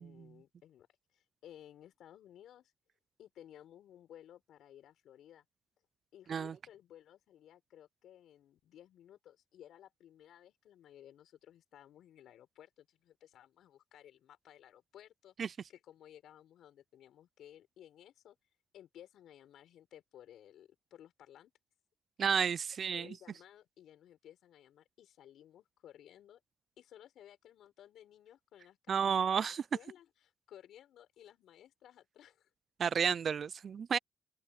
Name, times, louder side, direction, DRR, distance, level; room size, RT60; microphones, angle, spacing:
voice 1, 0.0-2.7 3.2-5.4 6.1-18.4 18.7-21.5 22.9-26.4 26.8-32.5, left 11 dB, 75° left, 5.9 m, -57 dB
voice 2, 22.2-23.1 28.9-29.6 32.8-34.0, right 7 dB, 50° right, 0.4 m, -31 dB
cardioid pair, 90°, 0 cm